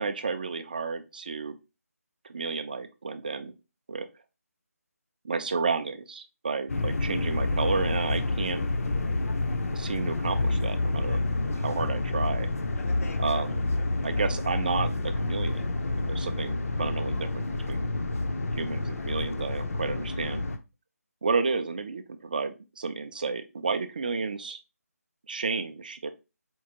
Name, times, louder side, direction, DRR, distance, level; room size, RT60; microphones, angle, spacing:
voice 1, 0.0-1.6 2.2-3.5 3.9-4.1 5.2-8.6 9.7-11.2 11.5-12.5 13.2-13.6 14.0-15.7 16.0-17.9 18.6-20.4 21.2-24.6 25.3-26.1, right 4 dB, 35° right, 9 dB, 0.3 m, -31 dB
sound 1, 6.7-20.6, left 2 dB, 60° left, 0.5 m, -29 dB
4.4 x 2.4 x 2.8 m, 0.27 s
figure-of-eight pair, 170°, 9 cm